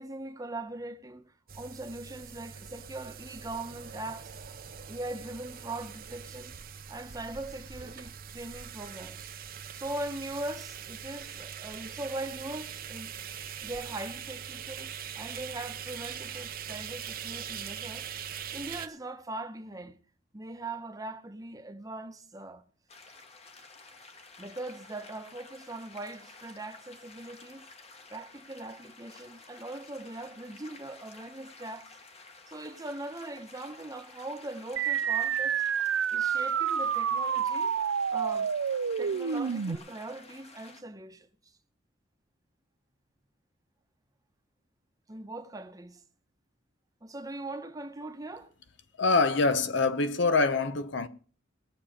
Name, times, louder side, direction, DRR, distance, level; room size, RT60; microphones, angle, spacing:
voice 1, 0.0-4.3 4.9-6.5 6.9-9.3 9.7-13.1 13.6-18.1 18.5-20.0 20.3-22.7 24.4-27.7 28.1-31.9 32.5-35.6 36.1-37.8 38.1-38.6 39.0-41.3 45.1-46.0 47.0-48.5, right 2 dB, 20° right, 1.0 m, -40 dB
sound 1, 1.5-18.9, right 8 dB, 50° right, 0.8 m, -42 dB
sound 2, 22.9-40.8, left 3 dB, 35° left, 1.3 m, -52 dB
sound 3, 34.8-39.8, right 7 dB, 85° right, 0.5 m, -28 dB
voice 2, 49.0-51.1, left 3 dB, 65° left, 0.8 m, -25 dB
20.0 x 7.2 x 5.0 m
head